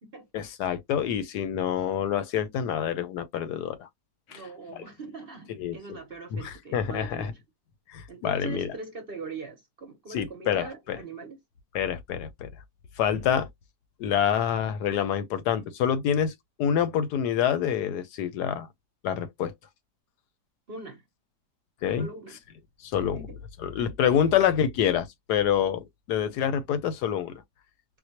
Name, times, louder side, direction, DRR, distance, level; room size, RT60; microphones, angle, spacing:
voice 1, 0.3-3.9 4.3-4.4 5.6-5.8 6.3-7.3 7.9-8.7 10.1-11.0 11.7-12.5 13.0-13.5 14.0-18.7 19.0-19.5 21.8-22.1 22.8-23.2 23.6-27.4, left 9 dB, 80° left, 1.2 m, -27 dB
voice 2, 4.3-7.4 8.1-11.4 20.7-21.0 22.0-22.4 23.1-23.4 24.1-24.3, right 4 dB, 45° right, 0.8 m, -41 dB
4.3 x 2.1 x 2.8 m
omnidirectional pair, 1.8 m